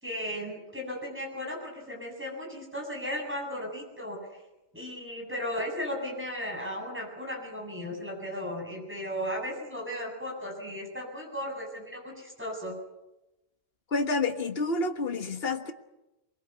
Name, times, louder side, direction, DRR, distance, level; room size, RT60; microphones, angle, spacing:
voice 1, 0.0-4.2 4.7-12.8, equal, 10° right, 0 dB, 7.9 m, -36 dB
voice 2, 13.9-15.7, left 3 dB, 60° left, 7 dB, 1.8 m, -29 dB
23.5 x 22.0 x 8.3 m, 0.97 s
omnidirectional pair, 1.1 m